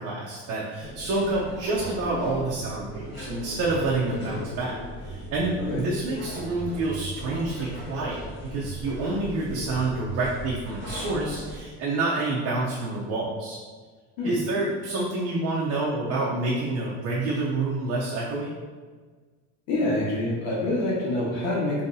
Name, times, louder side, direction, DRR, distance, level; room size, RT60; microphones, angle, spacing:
voice 1, 0.0-13.6 14.2-18.5, right 2 dB, 50° right, -5 dB, 0.7 m, -28 dB
sound 1, 0.8-11.6, equal, 30° left, 1.5 m, -37 dB
voice 2, 19.7-21.8, left 2 dB, 85° left, -7 dB, 1.5 m, -26 dB
5.4 x 2.8 x 2.7 m, 1.5 s
cardioid pair, 170°, 33 cm